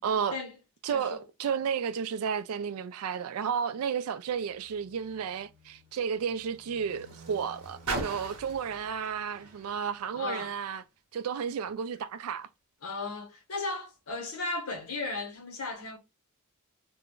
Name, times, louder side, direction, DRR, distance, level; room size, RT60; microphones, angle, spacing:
voice 1, 0.0-0.4 0.8-10.8 11.1-12.5, right 7 dB, 70° right, 0.3 m, -32 dB
voice 2, 0.9-1.2 10.1-10.5 12.8-16.0, left 3 dB, 75° left, 0.9 m, -35 dB
Car, 4.3-10.9 11.7-11.8, right 3 dB, 90° right, 0.9 m, -42 dB
2.3 x 2.1 x 3.6 m
head